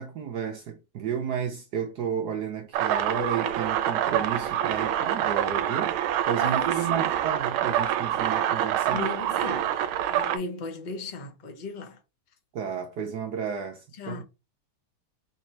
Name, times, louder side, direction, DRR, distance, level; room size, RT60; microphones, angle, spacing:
voice 1, 0.0-9.1 9.4-9.6 12.5-14.2, right 7 dB, 65° right, 1.0 m, -32 dB
sound 1, 2.7-10.4, right 11 dB, 80° right, 1.4 m, -26 dB
voice 2, 6.4-7.1 8.9-9.8 10.1-12.0 14.0-14.2, left 3 dB, 55° left, 0.5 m, -36 dB
4.1 x 2.7 x 4.4 m
omnidirectional pair, 2.3 m